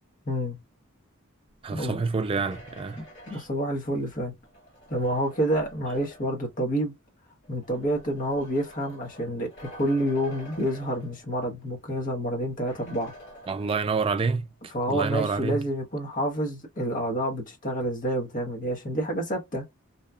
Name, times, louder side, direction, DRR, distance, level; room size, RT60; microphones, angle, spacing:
voice 1, 0.3-0.6 1.7-2.0 3.0-4.3 4.9-6.9 7.5-13.1 14.7-19.6, equal, 40° left, 1.0 m, -28 dB
voice 2, 1.6-3.0 13.5-14.5 14.9-15.6, right 4 dB, 25° right, 0.3 m, -27 dB
sound 1, 1.8-6.5 7.4-11.6 11.9-12.0 12.7-14.2, equal, 60° left, 1.6 m, -49 dB
2.8 x 2.3 x 2.2 m
head